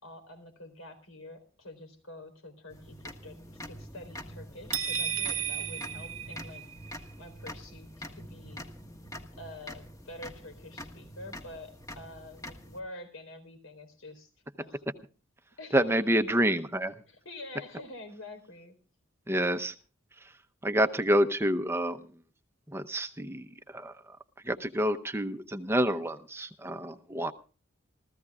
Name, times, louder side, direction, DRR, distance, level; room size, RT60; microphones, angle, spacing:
voice 1, 0.0-8.6 9.4-14.3 14.6-14.8 15.6-15.8 17.1-18.7, left 2 dB, 80° left, 9 dB, 4.1 m, -47 dB
sound 1, 2.7-12.8, equal, 15° left, 1.5 m, -45 dB
sound 2, 4.7-6.9, right 8 dB, 80° right, 1.1 m, -33 dB
voice 2, 15.7-16.9 19.3-19.7 20.6-22.0 22.7-23.5 23.7-23.9 24.5-27.3, right 1 dB, 10° right, 9 dB, 0.7 m, -28 dB
28.0 x 15.0 x 2.4 m, 0.36 s
head